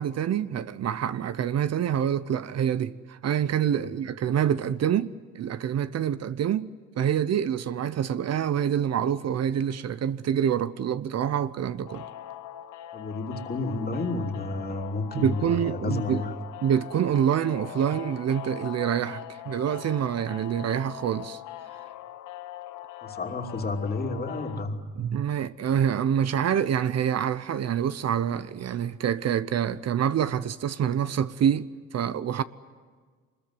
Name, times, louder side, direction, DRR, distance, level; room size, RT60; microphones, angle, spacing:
voice 1, 0.0-5.1 5.3-6.7 7.0-12.0 15.1-16.2 16.6-21.4 25.0-32.4, right 9 dB, 60° right, 0.8 m, -26 dB
sound 1, 11.9-24.6, left 12 dB, 80° left, 1.0 m, -41 dB
voice 2, 12.9-16.4 23.0-24.8, left 3 dB, 30° left, 2.9 m, -31 dB
24.5 x 21.5 x 9.8 m
cardioid pair, 90°, 30 cm